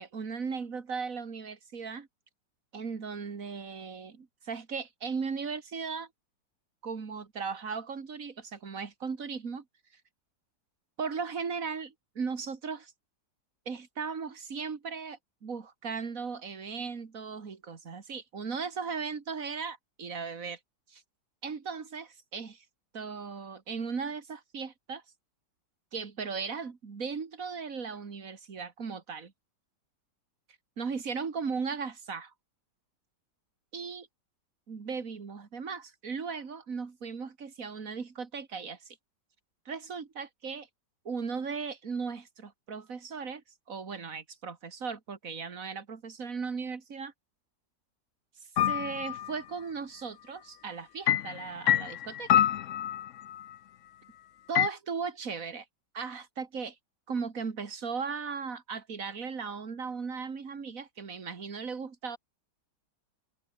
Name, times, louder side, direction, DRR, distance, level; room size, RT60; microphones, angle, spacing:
voice 1, 0.0-2.1 2.7-6.1 6.8-9.6 11.0-12.9 13.7-20.6 20.9-21.0 21.4-22.6 22.9-25.0 25.9-29.3 30.8-32.3 33.7-34.1 34.7-39.0 39.7-40.7 41.0-47.1 48.7-52.5 54.5-55.7 55.9-56.8 57.1-62.2, right 5 dB, 50° right, 2.5 m, -37 dB
sound 1, 48.6-49.3 51.1-53.4 54.5-54.7, left 11 dB, 60° left, 0.8 m, -26 dB
omnidirectional pair, 1.9 m